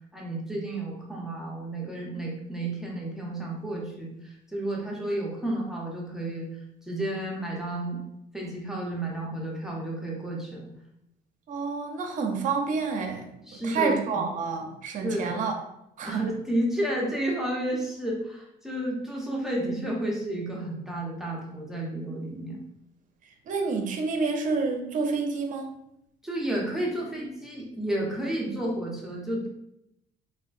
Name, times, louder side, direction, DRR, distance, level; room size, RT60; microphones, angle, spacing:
voice 1, 0.1-6.5 6.8-8.0 8.3-10.7 13.5-14.2 15.0-15.4 16.0-22.6 26.2-29.5, right 1 dB, 5° right, -3 dB, 0.6 m, -31 dB
voice 2, 11.5-15.5 16.0-16.3 23.5-25.7, right 4 dB, 50° right, 4 dB, 0.6 m, -29 dB
3.5 x 2.2 x 2.5 m, 0.83 s
cardioid pair, 110°, 17 cm